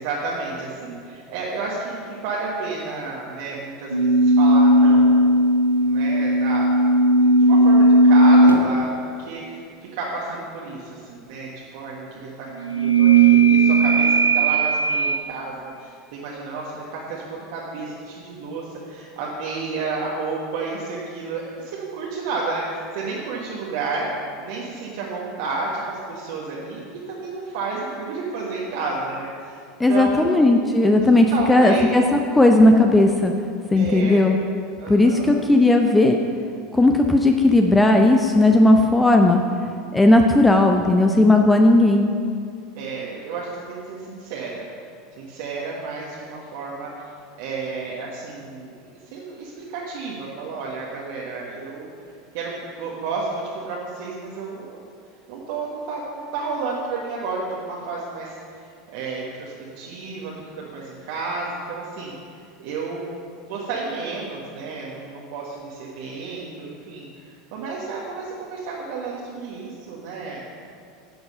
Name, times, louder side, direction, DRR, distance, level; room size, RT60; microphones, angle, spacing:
voice 1, 0.0-5.2 5.8-6.7 7.2-24.1 24.4-29.6 29.9-30.5 31.3-32.0 33.7-34.2 34.8-35.3 42.7-44.6 45.1-47.1 47.4-48.8 49.1-51.9 52.3-54.8 55.3-70.5, right 3 dB, 55° right, -4 dB, 1.4 m, -31 dB
sound 1, 3.9-8.7 12.6-15.2, right 2 dB, 85° right, 0.6 m, -16 dB
voice 2, 29.8-33.3 33.7-34.4 34.9-36.2 36.7-39.4 39.9-42.1, left 2 dB, 10° left, 4 dB, 0.7 m, -16 dB
10.5 x 7.8 x 5.4 m, 2.4 s
figure-of-eight pair, 80°, 0 cm